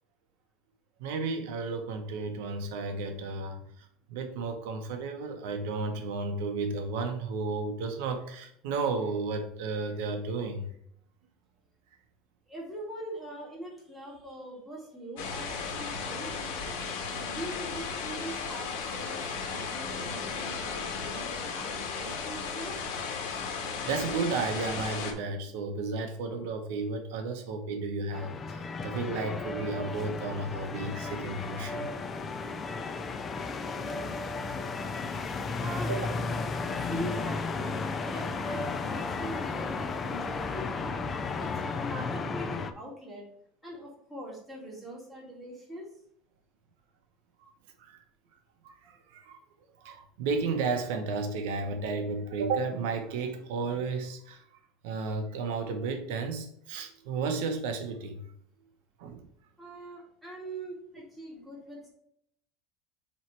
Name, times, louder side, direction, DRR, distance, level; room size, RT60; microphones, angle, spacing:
voice 1, 1.0-10.7 16.8-16.9 23.8-31.9 35.9-36.0 47.8-48.0 48.6-49.4 49.8-54.4 54.8-58.2 59.0-59.3, right 4 dB, 70° right, 0.9 m, -33 dB
voice 2, 12.5-16.3 17.1-22.8 35.6-36.1 36.6-37.8 38.1-41.0 41.4-43.2 43.6-45.9 59.6-61.9, right 1 dB, ahead, 1.8 m, -42 dB
sound 1, 15.2-25.1, left 5 dB, 70° left, 1.5 m, -35 dB
sound 2, 28.1-42.7, left 4 dB, 20° left, 0.4 m, -34 dB
7.3 x 3.1 x 4.5 m
cardioid pair, 170°, 0 cm